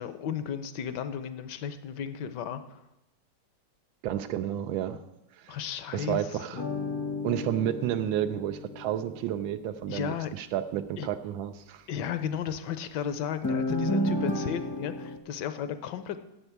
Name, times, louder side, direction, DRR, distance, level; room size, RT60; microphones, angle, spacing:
voice 1, 0.0-2.8 5.5-6.7 9.9-10.3 11.0-11.1 11.9-16.2, left 8 dB, 70° left, 11 dB, 1.2 m, -34 dB
voice 2, 4.0-5.0 5.4-5.6 5.9-6.6 7.2-11.8, right 11 dB, 90° right, 9 dB, 1.4 m, -31 dB
sound 1, 6.5-9.1 13.4-15.2, left 1 dB, 20° left, 0.5 m, -31 dB
8.0 x 7.1 x 8.3 m, 0.92 s
omnidirectional pair, 2.1 m